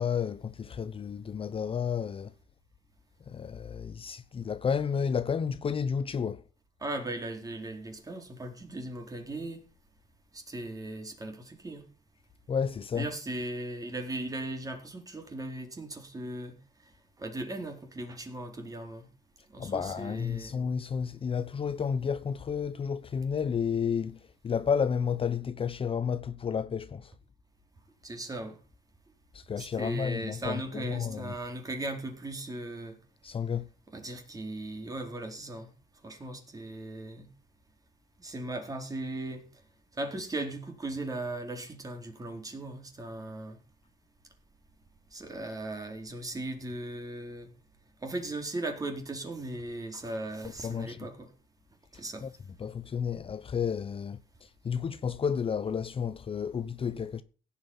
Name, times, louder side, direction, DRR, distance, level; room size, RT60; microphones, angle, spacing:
voice 1, 0.0-2.3 3.3-6.4 12.5-13.1 19.6-27.1 29.3-31.4 33.2-33.7 50.6-51.1 52.2-52.3 52.6-57.2, left 7 dB, 35° left, 0.9 m, -31 dB
voice 2, 6.8-9.6 10.3-11.8 12.9-16.6 17.2-19.1 19.5-20.6 28.0-28.6 29.6-33.0 33.9-35.7 36.0-37.3 38.2-39.4 39.9-43.6 45.1-47.5 48.0-51.3 51.9-52.3, right 2 dB, 20° right, 4.3 m, -38 dB
16.5 x 8.6 x 5.7 m
cardioid pair, 110°, 17 cm